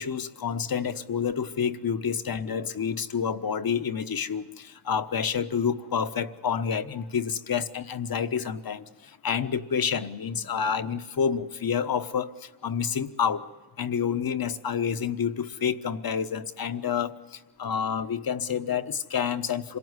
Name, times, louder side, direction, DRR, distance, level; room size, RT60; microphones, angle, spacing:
voice 1, 0.0-13.4 13.8-19.8, left 7 dB, 50° left, 10 dB, 1.3 m, -29 dB
26.5 x 18.0 x 9.8 m, 1.2 s
cardioid pair, 65°, 47 cm